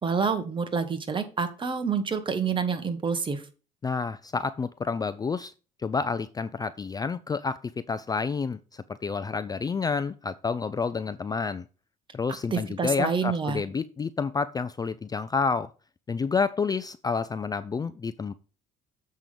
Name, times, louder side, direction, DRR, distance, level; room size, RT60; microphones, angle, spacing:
voice 1, 0.0-3.4 12.5-13.6, right 5 dB, 30° right, 1.5 m, -28 dB
voice 2, 3.8-5.5 5.8-7.6 7.9-11.6 12.1-15.7 16.1-18.3, left 5 dB, 20° left, 0.4 m, -29 dB
7.5 x 5.6 x 5.1 m
cardioid pair, 110°, 17 cm